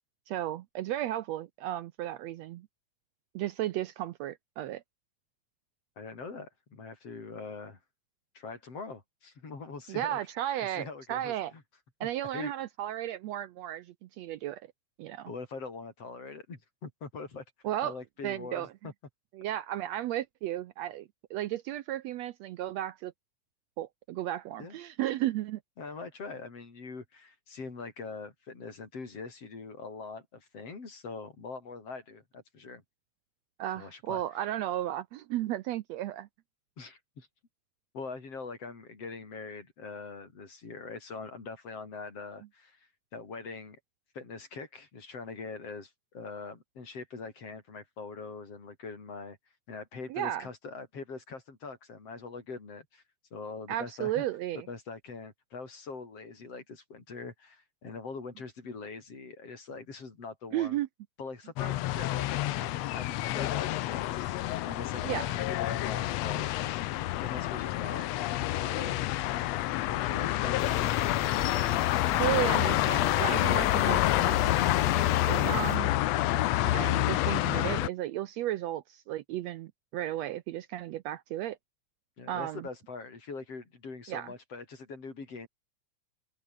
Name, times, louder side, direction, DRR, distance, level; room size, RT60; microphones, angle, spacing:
voice 1, 0.3-2.7 3.3-4.8 9.9-11.5 12.0-14.6 15.0-15.3 17.6-17.9 18.2-18.7 19.3-23.1 23.8-25.6 33.6-36.3 50.1-50.5 53.7-54.7 60.5-60.9 65.0-65.4 72.1-74.7 75.0-75.9 76.7-81.6 82.3-82.7 84.1-84.3, right 13 dB, 75° right, 1.7 m, -34 dB
voice 2, 6.0-7.8 8.3-10.2 10.8-11.6 12.0-12.5 15.3-17.4 17.8-18.9 24.6-24.8 25.8-32.8 33.8-34.2 36.8-37.3 37.9-43.8 44.1-49.4 49.7-53.0 53.3-54.2 54.7-60.8 61.2-66.8 67.2-68.1 68.4-69.3 69.6-71.2 82.2-85.5, left 4 dB, 50° left, 5.6 m, -43 dB
sound 1, 61.6-77.9, left 16 dB, 70° left, 1.7 m, -28 dB
sound 2, 70.6-75.8, equal, ahead, 2.7 m, -43 dB
open air
omnidirectional pair, 3.5 m